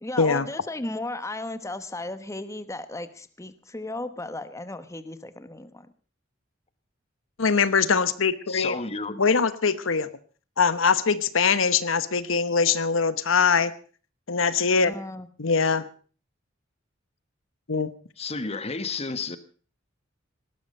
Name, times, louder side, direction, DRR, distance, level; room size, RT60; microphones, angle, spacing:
voice 1, 0.0-5.9 14.8-15.3, left 2 dB, 15° left, 12 dB, 1.0 m, -35 dB
voice 2, 7.4-8.8 9.2-10.1 10.6-13.7 14.3-14.9 15.4-15.8 17.7-17.9, left 5 dB, 80° left, 14 dB, 1.1 m, -22 dB
voice 3, 8.5-9.2 18.2-19.4, left 4 dB, 30° left, 13 dB, 1.3 m, -31 dB
18.5 x 13.0 x 5.3 m, 0.40 s
head